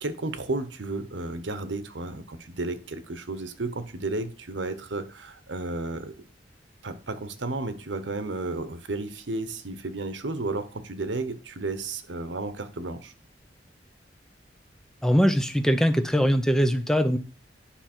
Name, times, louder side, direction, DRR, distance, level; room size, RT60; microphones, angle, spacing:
voice 1, 0.0-6.2 6.8-13.1, right 2 dB, 90° right, 11 dB, 1.0 m, -33 dB
voice 2, 15.0-17.2, equal, 5° left, 9 dB, 0.5 m, -21 dB
10.0 x 5.7 x 4.4 m, 0.36 s
head